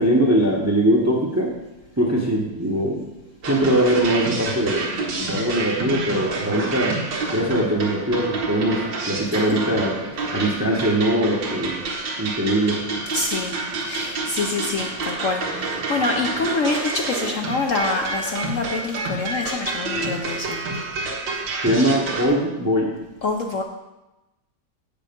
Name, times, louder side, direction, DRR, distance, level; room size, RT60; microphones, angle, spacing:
voice 1, 0.0-1.5 2.0-3.1 3.4-7.0 7.3-11.8 12.2-12.8 21.6-23.0, right 1 dB, 15° right, 0 dB, 0.8 m, -21 dB
sound 1, 3.4-22.3, right 3 dB, 90° right, 2.1 m, -28 dB
voice 2, 13.1-13.6 13.8-20.6 23.2-23.6, left 3 dB, 60° left, 2 dB, 0.9 m, -26 dB
8.1 x 7.4 x 5.2 m, 1.0 s
omnidirectional pair, 2.0 m